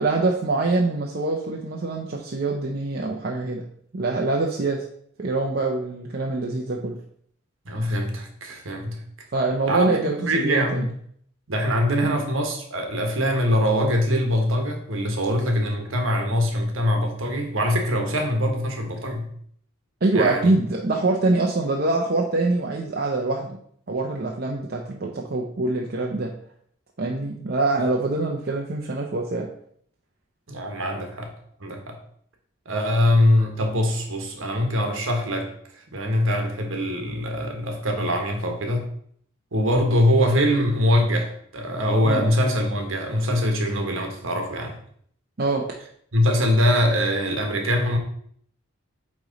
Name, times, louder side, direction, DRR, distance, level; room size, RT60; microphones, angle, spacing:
voice 1, 0.0-3.6 3.9-4.8 5.2-7.0 9.3-10.8 12.0-12.2 20.0-23.6 23.9-26.3 27.0-29.5 42.0-42.3 45.4-45.6, right 2 dB, 45° right, -1 dB, 0.6 m, -24 dB
voice 2, 7.6-9.0 9.7-10.9 11.5-19.3 20.1-20.5 30.5-31.3 31.6-32.0 32.6-35.5 35.9-38.9 39.5-44.7 46.1-48.0, equal, 65° right, 3 dB, 1.3 m, -23 dB
8.7 x 3.1 x 4.0 m, 0.64 s
head